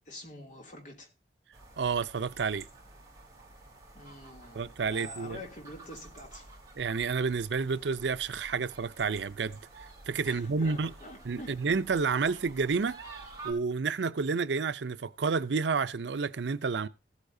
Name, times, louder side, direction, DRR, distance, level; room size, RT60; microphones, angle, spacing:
voice 1, 0.1-1.1 3.9-6.5 10.2-11.7, left 1 dB, 45° left, 2.7 m, -46 dB
sound 1, 1.5-13.5, right 3 dB, 20° right, 3.2 m, -50 dB
voice 2, 1.8-2.7 4.5-5.4 6.8-9.6 10.1-10.9 11.2-13.0 13.4-16.9, right 5 dB, 85° right, 0.6 m, -30 dB
15.5 x 8.3 x 2.7 m
head